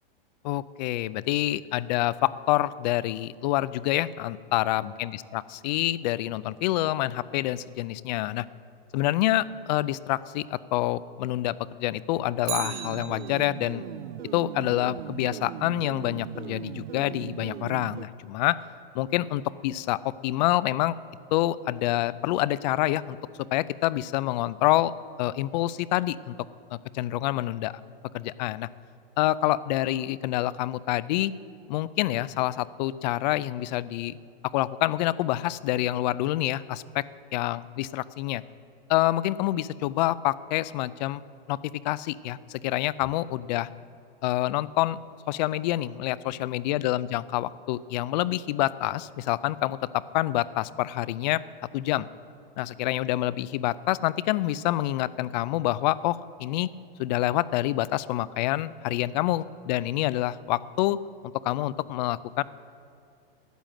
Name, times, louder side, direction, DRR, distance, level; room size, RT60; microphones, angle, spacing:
voice 1, 0.4-8.5 8.9-13.8 14.3-18.6 18.9-21.0 21.3-23.2 23.5-24.9 25.2-26.4 26.7-27.7 28.1-28.7 29.2-31.3 31.7-34.2 34.5-37.0 37.3-38.4 38.9-41.2 41.5-41.6 41.8-43.7 44.2-45.0 45.3-51.4 51.7-52.1 52.6-56.7 57.0-61.0 61.4-62.4, left 15 dB, 45° left, 19 dB, 0.4 m, -27 dB
Bicycle, 12.4-13.8 22.1-22.2, right 11 dB, 55° right, 1.3 m, -36 dB
sound 1, 12.5-18.1, right 11 dB, 85° right, 0.5 m, -39 dB
12.5 x 8.9 x 7.6 m, 2.5 s
hypercardioid pair, 130°, 30 cm